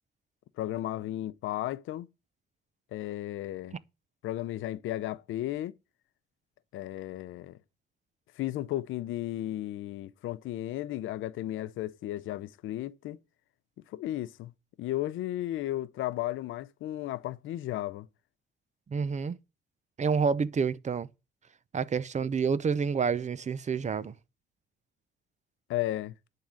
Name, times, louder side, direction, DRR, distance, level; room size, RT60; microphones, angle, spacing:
voice 1, 0.6-2.1 2.9-3.8 4.2-5.7 6.7-7.6 8.4-13.2 13.9-14.5 14.8-18.1 25.7-26.1, left 14 dB, 80° left, 0.6 m, -34 dB
voice 2, 18.9-19.4 20.0-21.1 21.7-24.1, right 5 dB, 35° right, 0.7 m, -28 dB
10.5 x 3.8 x 7.4 m
cardioid pair, 90°, 20 cm